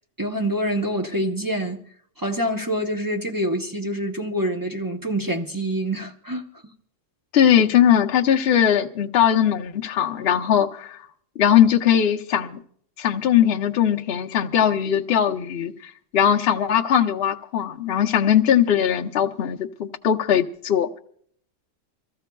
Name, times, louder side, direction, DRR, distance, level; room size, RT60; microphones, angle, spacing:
voice 1, 0.2-1.8 2.2-6.4, equal, 25° right, 0.6 m, -26 dB
voice 2, 7.3-11.0 11.4-12.6 13.0-15.7 16.1-21.0, left 9 dB, 60° left, 0.9 m, -20 dB
26.5 x 14.5 x 2.2 m
omnidirectional pair, 1.3 m